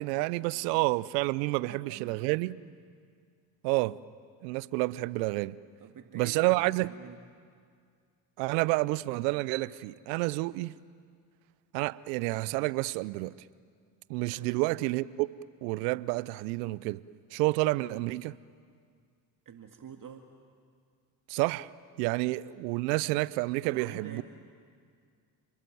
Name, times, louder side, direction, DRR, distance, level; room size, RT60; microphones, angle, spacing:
voice 1, 0.0-2.6 3.6-4.0 4.4-5.6 6.1-6.9 8.4-10.8 11.7-13.3 14.1-15.3 15.6-17.0 17.3-18.3 21.3-21.7 22.0-24.2, right 21 dB, 75° right, 0.8 m, -29 dB
voice 2, 1.2-2.2 2.6-2.8 5.8-7.2 14.3-14.5 19.5-20.3 23.6-24.2, right 7 dB, 40° right, 2.0 m, -48 dB
30.0 x 21.0 x 9.4 m
hypercardioid pair, 60°, 50 cm